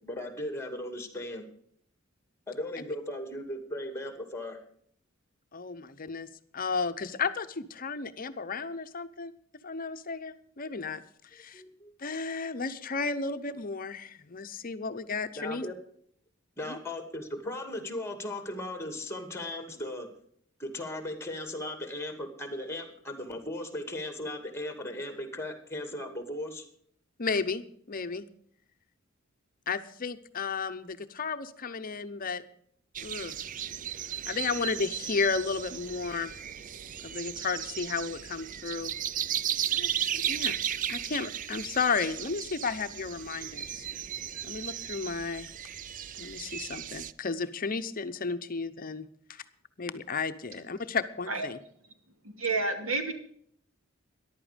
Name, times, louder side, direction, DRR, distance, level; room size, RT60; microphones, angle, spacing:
voice 1, 0.0-1.4 2.5-4.6 11.5-11.9 15.3-15.8 16.6-20.1 20.6-26.6, left 1 dB, 15° left, 7 dB, 2.3 m, -37 dB
voice 2, 5.5-6.3 6.5-9.3 9.6-11.0 11.3-11.6 12.0-15.6 16.7-16.8 27.2-28.3 29.7-32.4 33.0-33.3 34.3-36.3 37.0-38.9 39.7-40.6 40.9-43.9 44.4-45.5 46.2-49.4 49.8-51.6, left 4 dB, 45° left, 11 dB, 0.8 m, -33 dB
sound 1, 33.0-47.1, right 10 dB, 40° right, 0.5 m, -35 dB
voice 3, 52.4-53.1, right 3 dB, 90° right, 6 dB, 2.4 m, -29 dB
14.5 x 11.0 x 5.1 m, 0.63 s
head